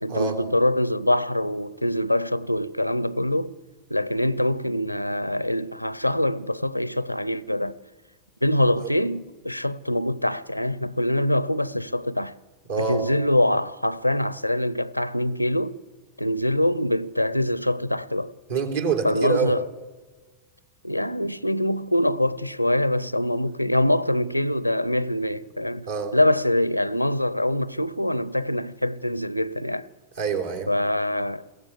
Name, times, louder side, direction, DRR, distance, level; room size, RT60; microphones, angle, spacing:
voice 1, 0.0-3.6 3.9-7.8 8.4-12.4 12.8-15.8 16.2-18.3 19.0-19.6 20.8-25.9 26.1-29.9 30.7-31.5, left 1 dB, 90° left, 0.6 m, -24 dB
voice 2, 12.7-13.0 18.5-19.5 25.9-26.1 30.2-30.7, right 6 dB, 65° right, 3.5 m, -26 dB
22.0 x 16.5 x 8.2 m
figure-of-eight pair, 90°, 0 cm